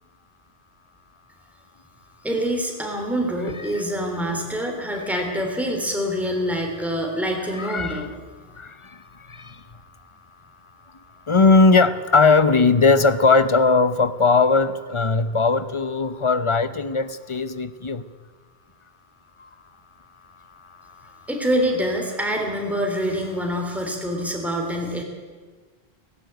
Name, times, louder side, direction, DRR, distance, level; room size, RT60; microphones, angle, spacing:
voice 1, 2.2-8.1 21.3-25.0, equal, ahead, 1 dB, 3.3 m, -25 dB
voice 2, 7.6-8.1 8.6-8.7 9.3-9.6 11.3-18.0, left 4 dB, 30° left, 13 dB, 0.9 m, -18 dB
17.5 x 17.5 x 9.3 m, 1.4 s
omnidirectional pair, 1.1 m